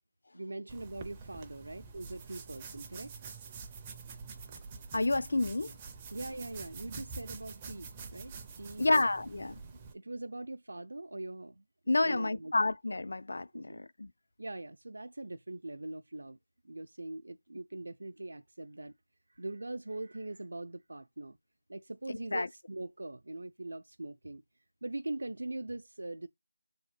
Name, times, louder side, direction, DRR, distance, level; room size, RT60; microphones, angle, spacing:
voice 1, 0.3-3.1 6.1-9.0 9.7-11.6 12.0-12.5 13.5-13.8 14.4-16.4 16.6-18.9 19.3-21.4 21.7-24.4 24.8-26.3, right 2 dB, 70° right, 0.5 m, -42 dB
sound 1, 0.7-9.9, right 5 dB, 10° right, 0.4 m, -47 dB
voice 2, 4.9-5.7 8.8-9.6 11.9-14.1 22.1-22.5, left 2 dB, 50° left, 0.4 m, -29 dB
7.0 x 3.5 x 4.2 m
figure-of-eight pair, 175°, 0 cm